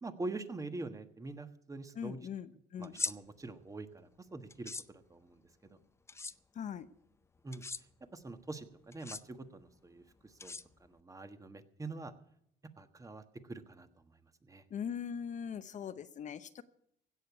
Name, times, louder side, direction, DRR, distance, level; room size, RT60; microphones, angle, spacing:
voice 1, 0.0-2.3 2.8-5.4 7.4-7.6 8.1-10.5 10.8-12.1 12.8-13.9 14.4-14.6, right 2 dB, 20° right, 9 dB, 1.3 m, -44 dB
voice 2, 2.0-3.0 6.5-6.9 14.7-16.6, left 7 dB, 45° left, 12 dB, 0.8 m, -41 dB
sound 1, 2.8-3.1 4.5-4.8 6.1-6.3 7.5-7.8 8.9-9.2 10.4-11.0, left 4 dB, 15° left, 0.5 m, -39 dB
16.5 x 6.7 x 9.5 m, 0.70 s
cardioid pair, 110°, 17 cm